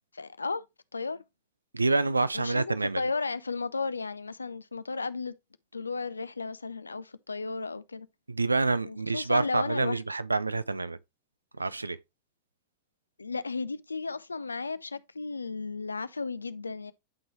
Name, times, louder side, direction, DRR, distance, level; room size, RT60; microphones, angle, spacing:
voice 1, 0.1-0.6 0.9-1.2 2.3-5.3 5.7-8.1 8.8-10.0 13.2-16.9, left 4 dB, 80° left, 0.4 m, -34 dB
voice 2, 1.7-3.0 8.3-11.0 11.6-12.0, right 3 dB, 80° right, 0.4 m, -27 dB
11.0 x 3.8 x 3.1 m
figure-of-eight pair, 90°, 0 cm